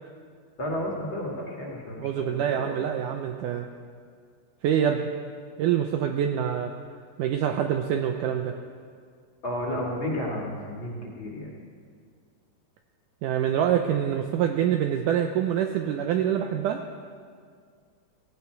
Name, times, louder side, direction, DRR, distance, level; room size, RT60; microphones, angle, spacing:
voice 1, 0.6-2.8 9.4-11.5, left 1 dB, 40° left, -3 dB, 2.4 m, -32 dB
voice 2, 2.0-3.7 4.6-5.1 5.6-6.7 7.2-8.6 13.2-16.8, right 9 dB, 80° right, 5 dB, 1.9 m, -25 dB
17.5 x 16.5 x 4.6 m, 2.1 s
omnidirectional pair, 4.3 m